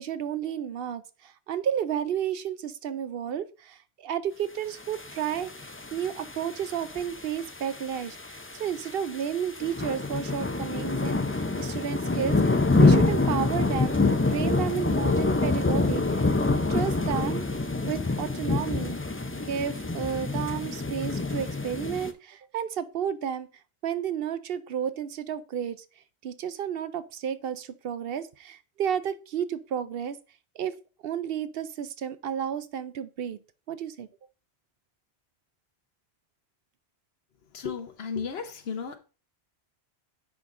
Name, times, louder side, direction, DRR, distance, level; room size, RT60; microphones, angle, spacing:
voice 1, 0.0-13.9 14.3-16.3 16.7-17.4 17.8-19.0 19.4-23.5 23.8-25.8 26.2-30.2 30.5-30.8 31.0-33.4 33.7-34.1, right 8 dB, 65° right, 0.7 m, -32 dB
sound 1, 4.9-22.1, left 3 dB, 20° left, 0.3 m, -27 dB
voice 2, 37.5-39.0, left 6 dB, 70° left, 1.1 m, -34 dB
9.8 x 3.9 x 3.6 m
omnidirectional pair, 1.1 m